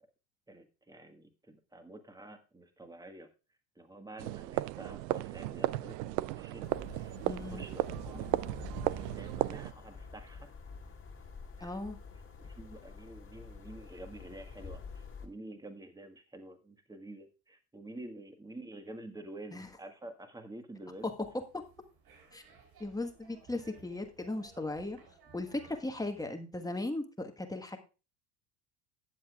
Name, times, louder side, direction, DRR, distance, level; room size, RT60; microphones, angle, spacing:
voice 1, 0.5-3.3 3.7-6.7 6.9-8.3 8.6-10.5 11.6-11.8 12.4-21.1, right 2 dB, 10° right, 7 dB, 1.5 m, -49 dB
sound 1, 4.2-9.7, right 17 dB, 75° right, 0.6 m, -35 dB
sound 2, 6.6-15.3, left 4 dB, 25° left, 2.0 m, -48 dB
voice 2, 7.2-7.6 11.6-12.0 19.5-19.7 21.5-21.6 22.3-22.4 22.8-25.0 25.3-27.8, left 2 dB, 5° left, 6 dB, 1.3 m, -37 dB
sound 3, 20.9-26.3, right 5 dB, 45° right, 6.5 m, -60 dB
18.5 x 7.3 x 2.4 m, 0.32 s
supercardioid pair, 95°, 49 cm